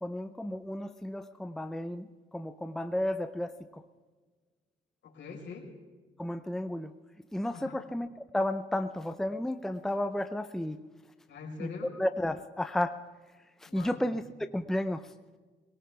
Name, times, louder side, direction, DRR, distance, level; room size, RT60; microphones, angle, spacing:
voice 1, 0.0-3.8 6.2-6.9 7.3-8.1 8.3-10.8 11.6-11.7 12.0-13.0 13.6-14.2 14.5-15.1, left 1 dB, ahead, 9 dB, 0.6 m, -32 dB
voice 2, 5.0-5.7 7.5-7.8 11.3-11.9 13.7-14.1, left 4 dB, 65° left, -1 dB, 4.5 m, -43 dB
22.0 x 18.0 x 3.4 m, 1.4 s
cardioid pair, 90°, 20 cm